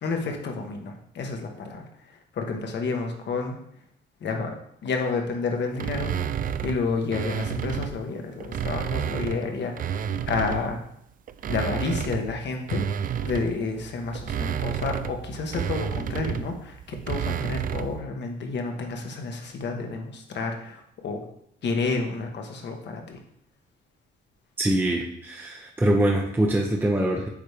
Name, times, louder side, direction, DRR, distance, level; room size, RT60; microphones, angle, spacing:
voice 1, 0.0-3.6 4.2-4.5 4.8-6.1 6.6-10.0 10.3-10.8 11.5-12.8 13.2-21.2 21.6-23.2, left 4 dB, 60° left, 3 dB, 1.2 m, -30 dB
sound 1, 5.8-8.0 8.4-10.8 11.3-18.0, right 8 dB, 45° right, 0.4 m, -31 dB
voice 2, 24.6-27.3, right 1 dB, 10° right, 1 dB, 0.7 m, -23 dB
8.6 x 3.4 x 3.4 m, 0.71 s
cardioid pair, 90°, 20 cm